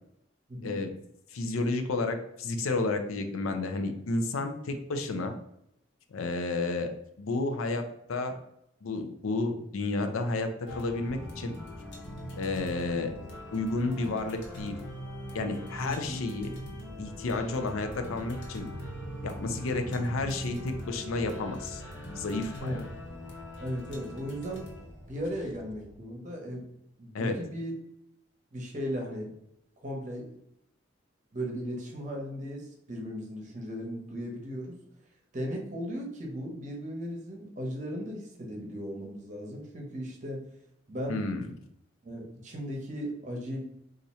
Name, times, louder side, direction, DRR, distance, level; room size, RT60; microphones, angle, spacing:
voice 1, 0.5-0.8 15.8-16.2 22.6-22.8 23.6-24.7 25.1-26.7 27.0-27.7 28.5-29.4 29.8-30.3 31.3-34.8 35.3-40.5 40.9-41.2 42.0-43.6, equal, 35° right, 0 dB, 0.8 m, -36 dB
voice 2, 1.3-5.3 6.1-6.9 7.2-8.4 8.8-11.6 12.4-13.1 13.5-14.8 15.3-16.5 17.0-18.7 19.2-21.8 22.2-22.8 27.1-27.4 41.1-41.5, left 2 dB, 90° left, 7 dB, 0.5 m, -31 dB
sound 1, 10.7-26.0, equal, 60° left, 0.8 m, -42 dB
2.7 x 2.5 x 4.1 m, 0.78 s
head